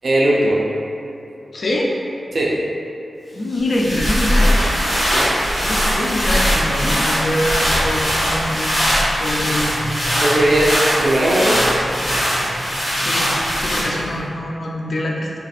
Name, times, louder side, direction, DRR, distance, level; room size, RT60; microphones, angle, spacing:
voice 1, 0.0-0.6 2.3-2.6 5.0-5.3 10.2-11.6, right 1 dB, 50° right, -4 dB, 0.4 m, -18 dB
voice 2, 1.5-1.9 3.3-4.6 5.6-8.7 9.2-9.8 13.0-15.4, left 1 dB, 50° left, -2 dB, 0.4 m, -24 dB
sound 1, 3.5-14.2, equal, 20° left, 1.4 m, -20 dB
3.2 x 2.5 x 4.1 m, 2.7 s
wide cardioid pair, 160°, 0 cm